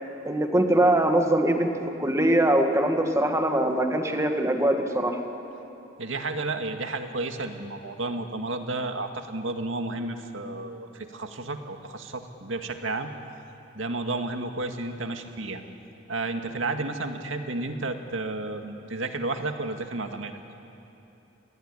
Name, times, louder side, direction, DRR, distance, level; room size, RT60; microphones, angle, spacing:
voice 1, 0.2-1.7 2.0-5.2, right 1 dB, 15° right, 4 dB, 2.0 m, -22 dB
voice 2, 6.0-13.1 13.8-15.6 16.1-20.4, right 2 dB, 90° right, 5 dB, 2.1 m, -32 dB
28.0 x 21.5 x 10.0 m, 3.0 s
head